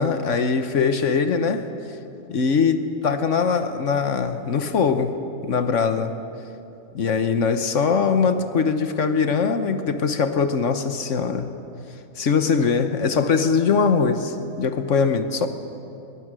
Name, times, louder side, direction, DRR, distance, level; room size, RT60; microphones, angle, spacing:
voice 1, 0.0-1.6 2.3-5.1 5.4-6.1 6.9-11.5 12.2-15.5, left 5 dB, 65° left, 9 dB, 1.3 m, -21 dB
22.0 x 21.5 x 6.2 m, 2.8 s
omnidirectional pair, 1.4 m